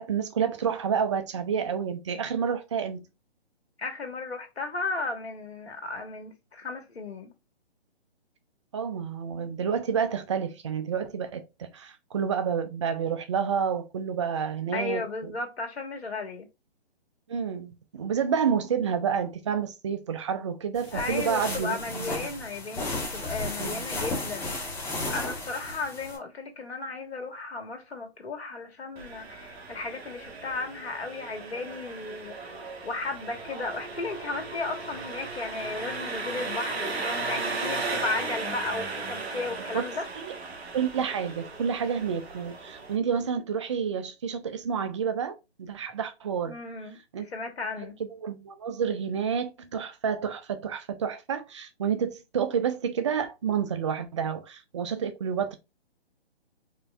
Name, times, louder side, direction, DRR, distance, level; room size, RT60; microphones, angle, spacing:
voice 1, 0.0-3.1 8.7-15.3 17.3-22.3 23.6-23.8 39.7-39.9 40.2-40.3 40.7-46.6 47.1-47.3 47.8-55.6, right 7 dB, 30° right, 0.4 m, -29 dB
voice 2, 3.8-7.3 14.7-16.5 20.9-24.7 25.1-32.6 32.8-40.0 46.4-48.0, left 3 dB, 75° left, 1.4 m, -35 dB
sound 1, 20.7-26.2, left 2 dB, 10° left, 0.9 m, -34 dB
Engine, 29.0-43.0, right 3 dB, 75° right, 1.2 m, -36 dB
4.4 x 3.1 x 2.3 m
hypercardioid pair, 145°, 32 cm